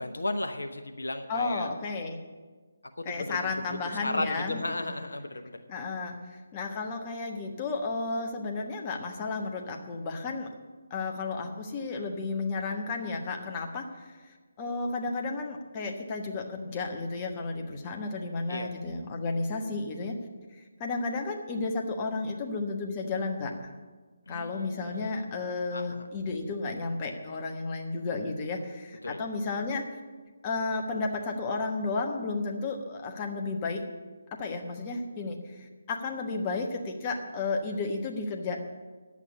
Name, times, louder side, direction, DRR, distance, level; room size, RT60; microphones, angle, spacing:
voice 1, 0.0-1.7 3.0-3.4 4.0-5.6 18.5-18.7 24.3-26.1 29.0-29.2, left 2 dB, 65° left, 7 dB, 0.9 m, -35 dB
voice 2, 1.3-2.2 3.0-4.9 5.7-10.5 10.9-20.1 20.5-23.7 24.3-29.9 30.4-33.8 34.3-38.6, left 3 dB, 25° left, 3 dB, 1.3 m, -33 dB
10.5 x 8.5 x 8.4 m, 1.4 s
figure-of-eight pair, 145°, 0 cm